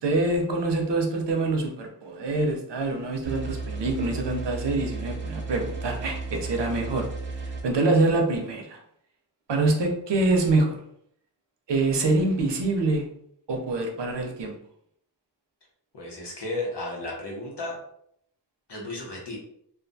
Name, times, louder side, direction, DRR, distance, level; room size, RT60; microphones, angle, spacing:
voice 1, 0.0-7.1 7.4-8.8 9.5-10.8 11.7-13.0 13.5-14.6, right 2 dB, 80° right, 3 dB, 0.6 m, -25 dB
sound 1, 3.2-7.6, right 3 dB, 30° right, 0.6 m, -34 dB
voice 2, 15.9-17.8 18.7-19.4, left 2 dB, 75° left, -2 dB, 0.9 m, -33 dB
2.4 x 2.2 x 2.6 m, 0.70 s
wide cardioid pair, 55°, 42 cm